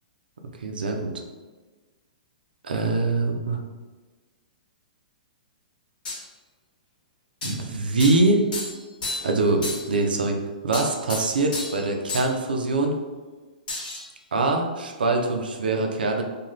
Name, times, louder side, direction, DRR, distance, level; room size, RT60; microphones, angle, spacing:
voice 1, 0.6-1.1 2.6-3.6 7.4-8.4 9.2-10.4 10.6-13.0 14.3-16.2, right 2 dB, 85° right, 3 dB, 0.4 m, -23 dB
sound 1, 6.1-6.2 7.4-7.6 8.0-8.3 8.5-9.4 9.6-9.9 10.7-11.8 12.1-12.3 13.7-14.1, left 2 dB, 70° left, 1.0 m, -32 dB
2.4 x 2.2 x 3.0 m, 1.3 s
hypercardioid pair, 130°, 5 cm